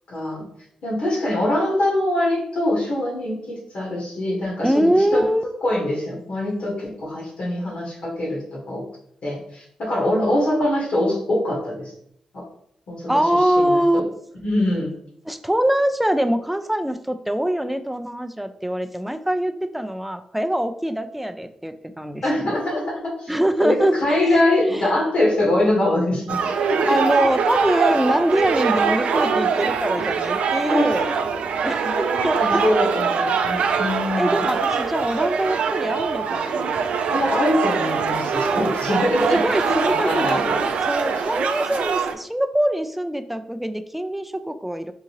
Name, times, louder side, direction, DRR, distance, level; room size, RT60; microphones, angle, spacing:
voice 1, 0.1-0.4 0.8-5.2 5.6-8.8 9.2-11.9 12.3-12.4 12.9-13.1 13.4-14.0 14.4-14.9 22.2-23.3 23.6-26.4 26.7-26.9 30.7-31.2 31.8-34.5 37.1-39.4 39.7-40.6, left 1 dB, 70° left, -3 dB, 1.5 m, -23 dB
voice 2, 4.6-5.4 13.1-14.0 15.3-22.6 23.3-24.2 24.7-24.9 26.9-31.1 31.6-32.6 34.2-36.9 39.3-40.4 40.8-44.9, right 1 dB, 5° right, 9 dB, 0.4 m, -23 dB
sound 1, 26.3-42.1, right 6 dB, 75° right, 0.4 m, -23 dB
3.7 x 2.7 x 3.0 m, 0.70 s
supercardioid pair, 50°, 2 cm